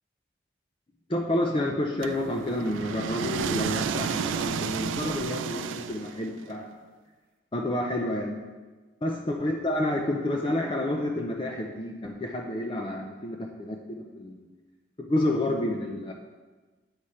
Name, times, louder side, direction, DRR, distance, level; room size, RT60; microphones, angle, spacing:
voice 1, 1.1-6.8 7.5-8.4 9.0-14.5 15.0-16.1, left 1 dB, 25° left, 1 dB, 0.5 m, -29 dB
sound 1, 2.0-6.4, right 7 dB, 90° right, 0.3 m, -32 dB
8.0 x 5.0 x 4.3 m, 1.3 s
head